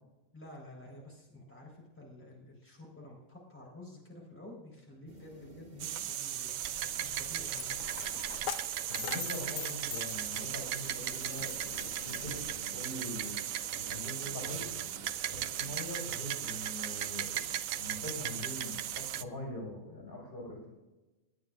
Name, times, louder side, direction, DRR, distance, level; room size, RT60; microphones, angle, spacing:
voice 1, 0.3-6.5 7.0-7.8, left 1 dB, 10° left, -3 dB, 4.4 m, -50 dB
sound 1, 5.1-10.7 11.2-15.9, right 1 dB, 35° right, 1.9 m, -56 dB
sound 2, 5.8-19.2, right 11 dB, 80° right, 1.0 m, -37 dB
Coin (dropping), 6.4-12.5, left 9 dB, 75° left, 1.0 m, -44 dB
voice 2, 8.9-12.4 12.7-13.3 13.8-14.7 15.6-17.4 17.7-20.7, left 1 dB, 40° left, -2 dB, 6.1 m, -43 dB
27.5 x 10.0 x 2.6 m, 1.1 s
omnidirectional pair, 1.4 m